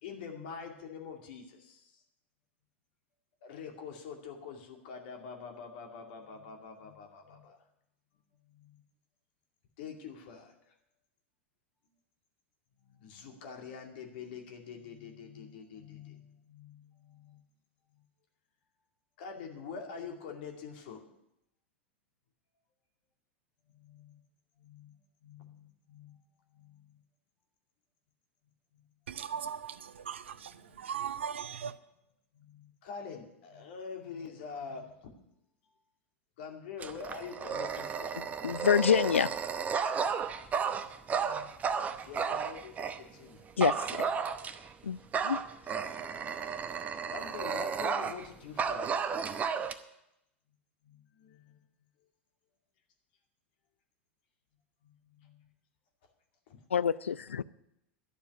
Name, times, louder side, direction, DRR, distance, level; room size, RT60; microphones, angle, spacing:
voice 1, 0.0-2.0 3.4-7.6 8.5-8.8 9.8-10.5 12.8-17.4 19.2-21.1 23.7-24.2 24.6-24.9 25.2-26.2 26.5-26.9 30.4-30.8 32.3-35.1 36.4-38.1 40.7-41.0 41.2-41.5 41.9-43.5 44.3-44.7 45.8-45.9 47.1-48.9 50.8-51.6 54.8-55.5 56.5-56.6, left 6 dB, 50° left, 2.4 m, -46 dB
voice 2, 29.1-31.7, right 8 dB, 65° right, 0.7 m, -39 dB
Dog, 36.8-43.0 43.6-44.7 45.1-48.3 48.6-49.7, right 6 dB, 20° right, 0.8 m, -33 dB
voice 3, 38.2-39.3 43.6-44.1 44.8-45.0 45.2-45.4 56.7-57.4, left 7 dB, 75° left, 0.4 m, -27 dB
11.5 x 7.2 x 9.7 m
figure-of-eight pair, 90°, 7 cm